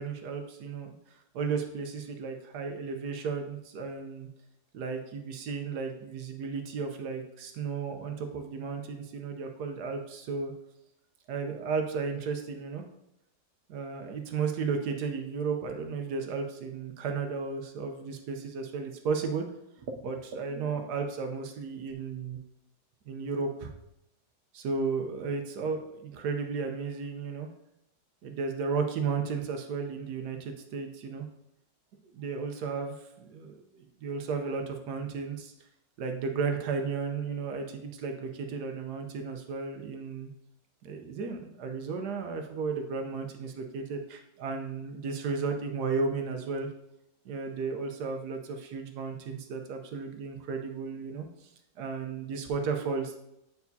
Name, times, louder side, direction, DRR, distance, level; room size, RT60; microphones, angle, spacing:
voice 1, 0.0-4.3 4.7-10.5 11.3-12.8 13.7-19.5 19.8-22.4 23.1-23.7 24.5-27.5 28.2-31.3 32.1-35.5 36.0-40.3 40.8-46.7 47.2-51.5 51.8-53.2, right 5 dB, 70° right, 4 dB, 1.2 m, -34 dB
8.1 x 4.6 x 2.7 m, 0.83 s
omnidirectional pair, 2.0 m